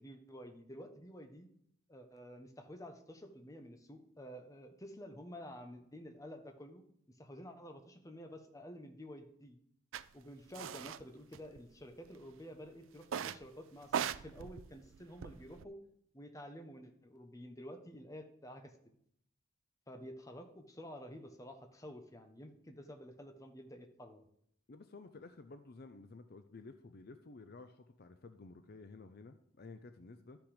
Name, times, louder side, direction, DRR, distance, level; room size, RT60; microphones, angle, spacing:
voice 1, 0.0-1.5 1.9-6.8 7.2-9.6 10.1-15.8 16.1-18.7 19.9-24.2, equal, 15° left, 6 dB, 1.0 m, -50 dB
sound 1, 9.9-10.0 10.5-11.0 11.3-12.1 13.0-13.5 13.8-15.6, right 8 dB, 85° right, 0.4 m, -40 dB
voice 2, 24.7-30.4, left 3 dB, 50° left, 9 dB, 0.6 m, -53 dB
12.0 x 6.1 x 5.0 m, 0.69 s
head